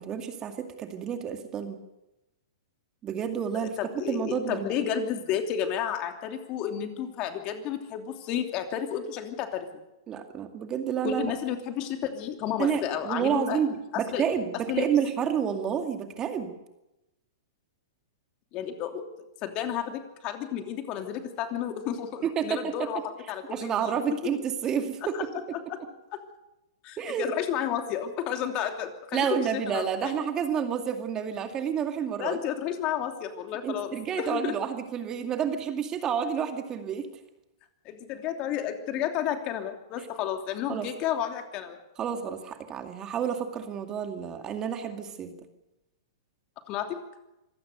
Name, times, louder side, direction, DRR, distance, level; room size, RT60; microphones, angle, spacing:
voice 1, 0.0-1.8 3.0-4.7 10.1-11.3 12.6-16.5 22.2-22.7 23.5-25.2 27.0-27.3 29.1-32.4 33.6-37.1 40.7-40.9 42.0-45.3, right 8 dB, 25° right, 6 dB, 2.3 m, -30 dB
voice 2, 3.8-9.7 11.0-13.6 13.9-14.2 14.7-14.9 18.5-19.0 19.4-23.9 25.7-25.8 26.8-30.1 32.1-34.5 37.8-41.8 46.7-47.0, left 9 dB, 40° left, 5 dB, 3.0 m, -32 dB
25.5 x 17.0 x 6.7 m, 0.95 s
hypercardioid pair, 120°, 2 cm